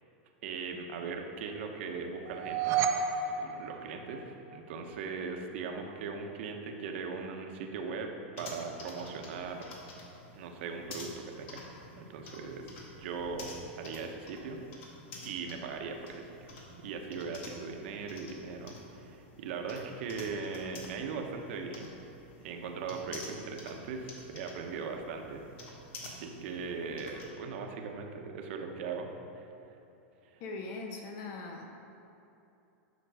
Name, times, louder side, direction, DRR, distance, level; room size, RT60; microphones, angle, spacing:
voice 1, 0.4-2.8 3.2-8.1 8.4-9.7 10.3-11.6 11.9-13.5 13.8-14.9 15.2-16.5 16.8-21.9 22.4-25.4 26.0-29.5 30.3-30.4, right 5 dB, 65° right, 3 dB, 1.1 m, -39 dB
sound 1, 2.2-4.5, right 6 dB, 40° right, 0.7 m, -31 dB
sound 2, 8.3-27.3, left 2 dB, 65° left, 2.0 m, -50 dB
voice 2, 30.4-31.7, left 3 dB, 45° left, 2 dB, 1.4 m, -40 dB
10.5 x 6.0 x 4.9 m, 2.8 s
supercardioid pair, 140°, 7 cm